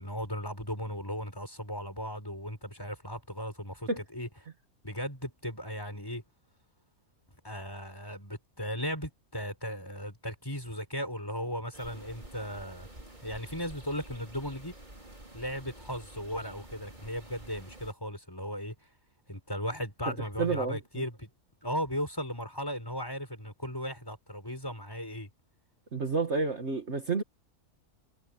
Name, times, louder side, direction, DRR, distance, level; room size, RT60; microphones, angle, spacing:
voice 1, 0.0-4.3 4.8-6.2 7.4-12.9 13.2-14.7 15.3-18.7 19.3-21.3 21.6-25.3, equal, 15° left, 5.9 m, -36 dB
sound 1, 11.7-17.9, right 1 dB, 30° right, 5.1 m, -49 dB
voice 2, 20.1-21.0 25.9-27.2, right 4 dB, 50° right, 1.9 m, -30 dB
omnidirectional pair, 1.6 m